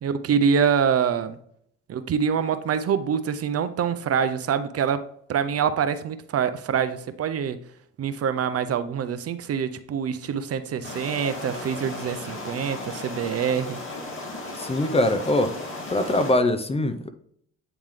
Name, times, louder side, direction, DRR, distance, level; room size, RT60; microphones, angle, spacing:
voice 1, 0.0-1.4 1.9-7.6 8.0-13.8, right 7 dB, 50° right, 0.6 m, -25 dB
sound 1, 10.8-16.3, left 2 dB, 45° left, 2.2 m, -35 dB
voice 2, 14.6-15.6 15.9-17.1, left 1 dB, 20° left, 0.6 m, -22 dB
8.8 x 3.6 x 3.2 m
cardioid pair, 90°, 30 cm